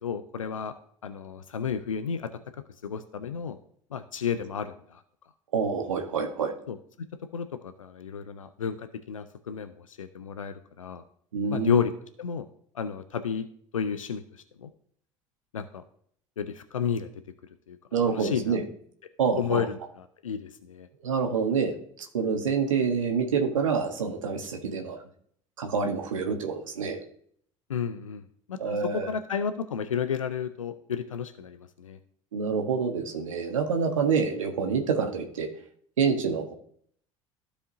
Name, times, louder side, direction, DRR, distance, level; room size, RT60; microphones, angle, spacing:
voice 1, 0.0-0.7 1.0-2.3 2.8-3.6 3.9-5.0 6.7-7.1 7.3-11.0 11.5-11.9 12.2-12.5 12.7-13.5 13.7-14.7 15.5-15.8 16.4-17.1 17.7-17.8 18.1-18.6 19.4-20.9 27.7-32.0, left 7 dB, 90° left, 10 dB, 0.4 m, -32 dB
voice 2, 5.5-6.5 11.3-11.8 17.9-18.6 19.2-19.7 21.0-25.0 25.6-27.0 28.6-29.1 32.3-35.5 36.0-36.5, right 5 dB, 85° right, 3 dB, 1.2 m, -27 dB
14.5 x 5.0 x 2.6 m, 0.63 s
hypercardioid pair, 65°, 16 cm